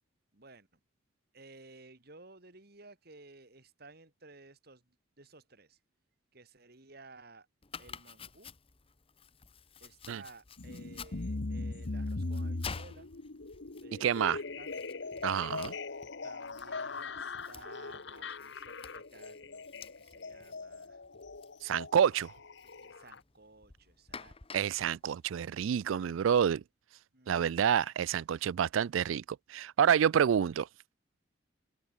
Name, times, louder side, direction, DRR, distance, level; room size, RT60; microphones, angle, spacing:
voice 1, 0.3-0.8 1.3-5.8 6.3-7.5 7.8-8.5 9.8-13.1 13.8-14.9 16.2-21.0 22.8-24.3 27.1-27.4, right 3 dB, 50° right, 2.6 m, -56 dB
Domestic sounds home sounds, 7.6-26.1, left 5 dB, 30° left, 1.0 m, -51 dB
sound 1, 10.6-23.2, left 3 dB, 60° left, 1.1 m, -40 dB
voice 2, 14.0-14.4 15.2-15.7 21.6-22.3 24.5-26.6 27.3-30.7, right 8 dB, 80° right, 0.3 m, -28 dB
open air
head